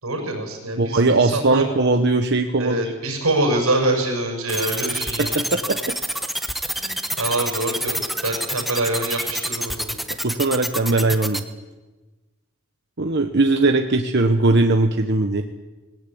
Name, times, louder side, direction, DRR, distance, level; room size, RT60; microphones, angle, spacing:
voice 1, 0.0-1.6 2.6-5.4 6.8-8.0 8.2-10.0, right 2 dB, 85° right, 2 dB, 6.8 m, -25 dB
voice 2, 0.8-2.8 5.2-5.8 10.2-11.4 13.0-15.4, right 2 dB, 50° right, 5 dB, 1.1 m, -19 dB
sound 1, 4.5-11.4, equal, ahead, 1.0 m, -26 dB
21.0 x 17.0 x 8.7 m, 1.2 s
head